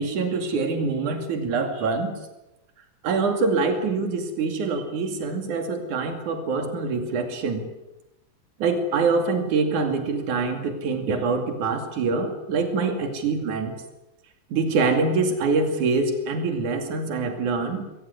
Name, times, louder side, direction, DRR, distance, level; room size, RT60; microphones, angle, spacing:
voice 1, 0.0-2.1 3.0-7.7 8.6-13.8 14.5-17.9, right 4 dB, 80° right, 6 dB, 4.0 m, -25 dB
22.0 x 18.5 x 9.6 m, 0.96 s
omnidirectional pair, 3.4 m